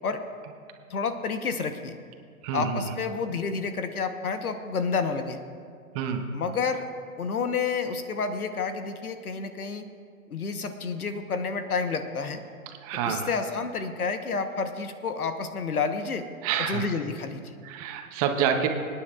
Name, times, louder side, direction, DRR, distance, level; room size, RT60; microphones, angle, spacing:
voice 1, 0.9-2.0 2.5-5.4 6.3-6.9 7.2-9.9 10.3-12.4 13.1-16.3 16.6-17.5, left 5 dB, 80° left, 8 dB, 1.1 m, -30 dB
voice 2, 2.4-2.9 5.9-6.2 12.8-13.3 16.4-16.8 17.6-18.7, right 8 dB, 25° right, 5 dB, 0.8 m, -27 dB
26.0 x 9.7 x 2.4 m, 2.2 s
hypercardioid pair, 125°, 43 cm